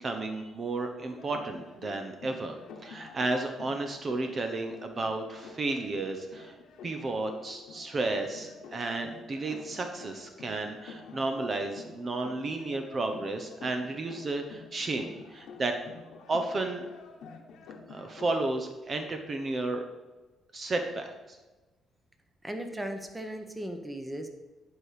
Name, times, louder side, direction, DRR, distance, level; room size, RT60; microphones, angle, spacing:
voice 1, 0.0-2.6 2.8-6.5 6.8-15.8 16.3-16.8 17.9-19.8 20.5-21.4, right 2 dB, 40° right, 5 dB, 0.9 m, -32 dB
sound 1, 1.0-18.3, left 5 dB, 80° left, 1.1 m, -48 dB
voice 2, 22.4-24.3, right 1 dB, 10° right, 6 dB, 1.1 m, -37 dB
10.5 x 4.9 x 5.0 m, 1.2 s
cardioid pair, 90°, 0 cm